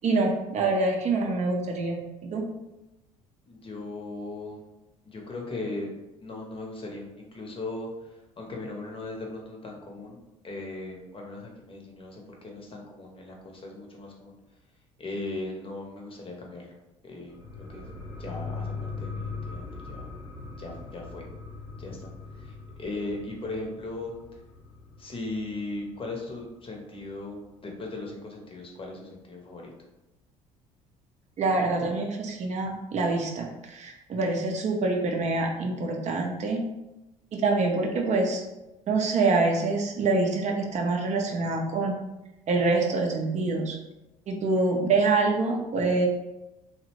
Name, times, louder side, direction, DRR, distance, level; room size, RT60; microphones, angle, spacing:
voice 1, 0.0-2.5 31.4-36.6 37.3-38.4 38.9-42.0 42.5-43.8 44.3-46.1, right 3 dB, 40° right, 2 dB, 0.5 m, -26 dB
voice 2, 3.4-4.6 5.0-5.9 6.2-10.2 10.4-14.3 15.0-16.7 17.0-17.8 18.2-20.0 20.6-21.2 21.8-24.2 25.0-29.7, left 2 dB, 30° left, 0 dB, 0.7 m, -38 dB
sound 1, 17.3-26.4 26.7-26.8, left 4 dB, 15° right, 0.9 m, -40 dB
2.7 x 2.0 x 2.8 m, 0.97 s
hypercardioid pair, 55°, 18 cm